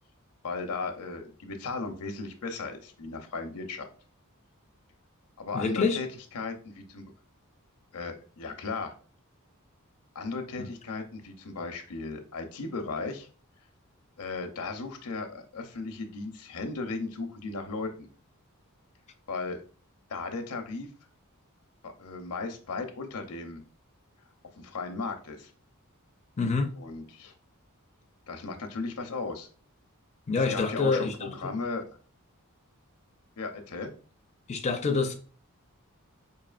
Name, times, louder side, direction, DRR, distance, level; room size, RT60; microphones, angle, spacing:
voice 1, 0.4-3.9 5.4-6.1 6.3-7.1 7.9-8.9 10.1-13.3 14.2-18.1 19.3-19.6 20.1-20.9 21.8-23.6 24.5-25.5 26.7-27.3 28.3-29.5 30.5-31.8 33.4-33.9, left 3 dB, 90° left, 0.7 m, -36 dB
voice 2, 5.5-6.0 26.4-26.7 30.3-31.6 34.5-35.1, left 4 dB, 30° left, 0.4 m, -27 dB
4.7 x 2.7 x 2.4 m
head